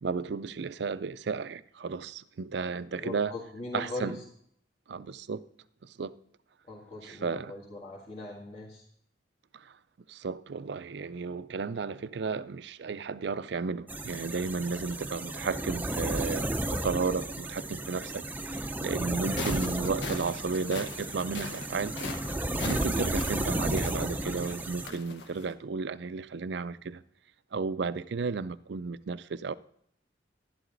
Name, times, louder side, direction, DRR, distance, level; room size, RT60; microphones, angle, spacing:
voice 1, 0.0-3.3 3.7-4.2 4.9-5.4 5.8-6.1 7.0-7.5 9.5-9.7 10.1-21.9 22.6-27.0 27.5-29.5, right 4 dB, 65° right, 0.4 m, -33 dB
voice 2, 3.0-4.2 6.7-8.8, left 2 dB, 40° left, 2.1 m, -40 dB
sound 1, 13.9-24.9, right 1 dB, 10° right, 0.6 m, -33 dB
sound 2, 19.1-25.5, left 3 dB, 65° left, 1.0 m, -41 dB
11.0 x 11.0 x 3.9 m
head